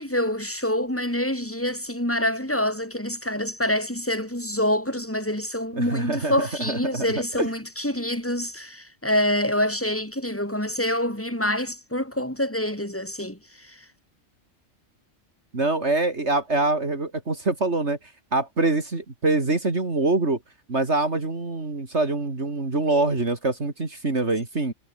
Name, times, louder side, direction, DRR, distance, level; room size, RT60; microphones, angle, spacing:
voice 1, 0.0-13.9, left 1 dB, 10° left, 5.2 m, -26 dB
voice 2, 5.8-7.0 7.4-7.5 15.5-18.0 18.3-20.4 20.7-24.7, right 2 dB, 55° right, 3.4 m, -24 dB
omnidirectional pair, 1.4 m